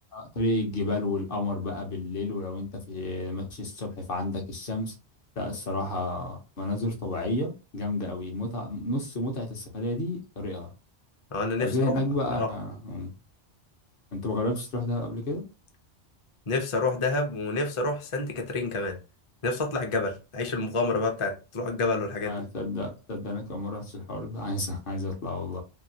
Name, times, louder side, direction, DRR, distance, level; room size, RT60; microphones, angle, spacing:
voice 1, 0.1-4.9 5.4-10.7 11.6-13.1 14.1-15.4 22.2-25.6, left 2 dB, 55° left, 0.9 m, -31 dB
voice 2, 11.3-11.7 12.4-12.5 16.5-19.0 19.4-22.4, left 3 dB, 40° left, 0.5 m, -28 dB
2.8 x 2.5 x 2.7 m
omnidirectional pair, 1.1 m